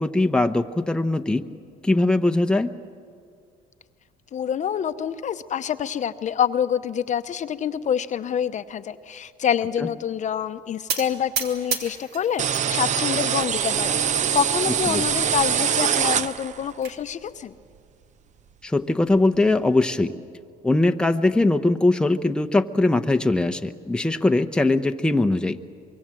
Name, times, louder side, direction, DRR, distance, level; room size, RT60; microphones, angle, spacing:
voice 1, 0.0-1.4 1.8-2.7 9.8-9.9 14.9-15.0 18.6-20.1 20.6-25.6, left 2 dB, 5° left, 7 dB, 0.8 m, -21 dB
voice 2, 4.3-17.5, left 8 dB, 45° left, 11 dB, 0.8 m, -26 dB
sound 1, 10.9-12.7 13.1-13.7 14.2-14.4 14.6-14.7 15.1-15.2 16.3-17.0, right 6 dB, 70° right, 2.6 m, -31 dB
sound 2, 12.4-16.7, right 8 dB, 45° right, 0.7 m, -23 dB
25.0 x 22.5 x 7.6 m, 2.2 s
cardioid pair, 110°, 17 cm